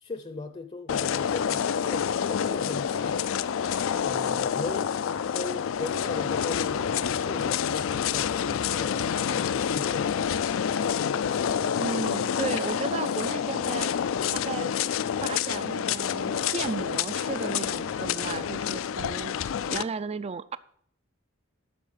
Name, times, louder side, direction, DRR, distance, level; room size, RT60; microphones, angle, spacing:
voice 1, 0.0-3.3 4.0-5.0 5.3-10.2, left 3 dB, 30° left, 0.6 m, -38 dB
sound 1, 0.9-19.8, left 8 dB, 75° left, 0.4 m, -28 dB
voice 2, 11.7-13.9 14.3-14.7 15.2-19.3 19.7-20.6, right 5 dB, 30° right, 0.4 m, -34 dB
9.4 x 6.2 x 7.4 m
head